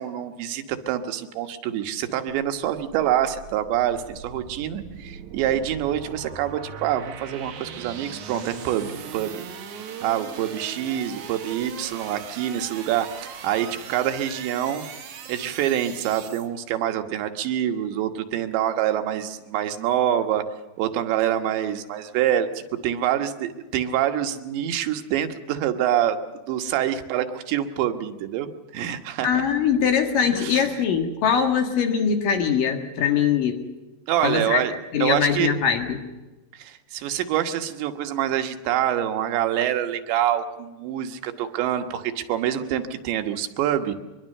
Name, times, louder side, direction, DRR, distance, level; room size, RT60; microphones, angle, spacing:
voice 1, 0.0-9.4 10.0-14.8 15.3-20.4 20.8-29.4 30.3-30.6 34.1-34.7 35.0-35.6 36.5-43.9, right 11 dB, 90° right, 7 dB, 3.6 m, -26 dB
sound 1, 2.3-16.5, right 7 dB, 55° right, 2.6 m, -39 dB
voice 2, 29.2-33.6 34.2-34.6 34.9-36.0, left 7 dB, 60° left, 5 dB, 3.1 m, -22 dB
23.5 x 22.5 x 6.6 m, 1.1 s
omnidirectional pair, 5.0 m